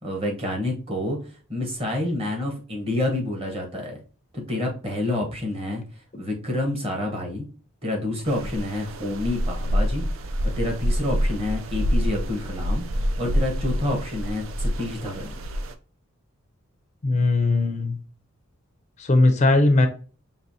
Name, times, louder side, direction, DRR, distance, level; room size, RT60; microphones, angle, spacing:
voice 1, 0.0-1.2 1.5-4.0 4.3-5.8 6.2-7.4 7.8-15.3, left 1 dB, 25° right, 1.1 m, -28 dB
sound 1, 8.3-15.7, equal, 65° right, 0.5 m, -27 dB
voice 2, 17.0-18.0 19.0-19.9, left 2 dB, 30° left, 0.4 m, -19 dB
5.4 x 2.8 x 2.7 m
head